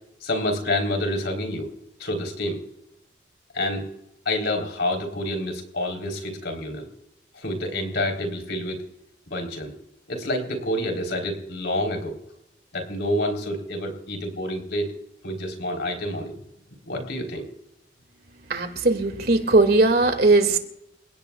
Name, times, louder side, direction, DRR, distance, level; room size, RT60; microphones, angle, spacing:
voice 1, 0.2-1.7 2.0-2.6 3.5-3.9 4.3-6.9 7.4-8.8 9.3-9.7 10.1-12.2 12.7-14.9 15.2-16.3 16.9-17.5, left 1 dB, 65° left, 3 dB, 3.8 m, -28 dB
voice 2, 18.5-20.6, right 2 dB, 55° right, 7 dB, 2.1 m, -19 dB
29.0 x 17.5 x 2.4 m, 0.82 s
head